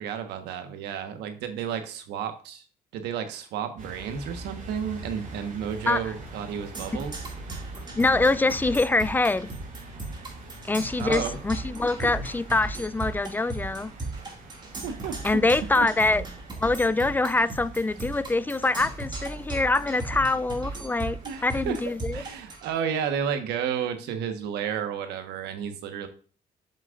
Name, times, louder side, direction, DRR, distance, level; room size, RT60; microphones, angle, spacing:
voice 1, 0.0-2.6 2.9-7.3 11.0-11.4 12.0-12.1 14.8-15.4 15.7-15.9 21.2-21.8 22.1-26.1, right 8 dB, 85° right, 1.3 m, -32 dB
sound 1, 3.8-22.6, right 1 dB, 50° right, 3.5 m, -45 dB
Percussion, 6.7-22.7, right 2 dB, 25° right, 2.2 m, -37 dB
voice 2, 7.9-9.5 10.7-13.9 15.2-16.2 16.6-22.2, left 2 dB, 10° left, 0.3 m, -24 dB
7.8 x 7.5 x 2.5 m
cardioid pair, 110°, 17 cm